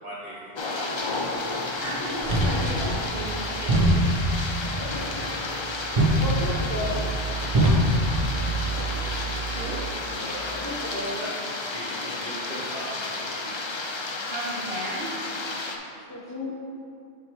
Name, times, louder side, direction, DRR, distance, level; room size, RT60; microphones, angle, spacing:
voice 1, 0.0-1.1 6.3-6.6 8.9-9.0 10.2-11.3 11.7-13.5 14.1-14.2 16.1-16.5, equal, 80° right, -7 dB, 2.1 m, -40 dB
sound 1, 0.5-15.8, left 2 dB, 40° left, 0.4 m, -32 dB
voice 2, 1.8-3.9 9.5-9.8 14.1-15.2, right 1 dB, 60° right, -3 dB, 1.3 m, -35 dB
sound 2, 2.2-9.6, right 1 dB, 30° right, 1.0 m, -25 dB
voice 3, 6.2-7.0 10.6-11.3 16.1-16.5, left 2 dB, 15° left, -2 dB, 0.9 m, -33 dB
6.9 x 4.9 x 4.5 m, 2.4 s
omnidirectional pair, 1.1 m